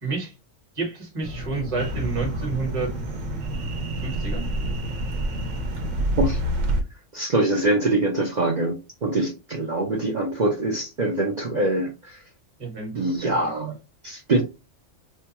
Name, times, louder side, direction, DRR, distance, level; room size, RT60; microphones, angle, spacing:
voice 1, 0.0-0.3 0.8-2.9 4.0-4.4 12.6-13.5, right 4 dB, 30° right, 1.0 m, -30 dB
sound 1, 1.2-6.5, left 1 dB, 25° left, 0.7 m, -35 dB
sound 2, 1.8-6.8, right 1 dB, 75° right, 1.0 m, -28 dB
voice 2, 7.1-12.2 12.9-13.7 14.0-14.4, right 2 dB, 50° right, 0.6 m, -24 dB
4.4 x 2.2 x 2.9 m
omnidirectional pair, 1.3 m